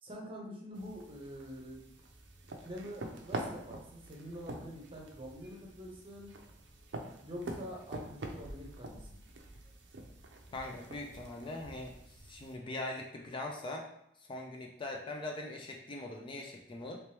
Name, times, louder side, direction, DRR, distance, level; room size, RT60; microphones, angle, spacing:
voice 1, 0.0-1.8 2.6-6.3 7.2-9.1, equal, 30° right, -1 dB, 0.8 m, -46 dB
sound 1, 0.7-12.6, right 2 dB, 85° right, 0.5 m, -46 dB
voice 2, 10.5-11.9 12.2-13.9 14.2-17.0, left 2 dB, 30° left, 1 dB, 0.4 m, -41 dB
3.1 x 2.9 x 3.3 m, 0.74 s
head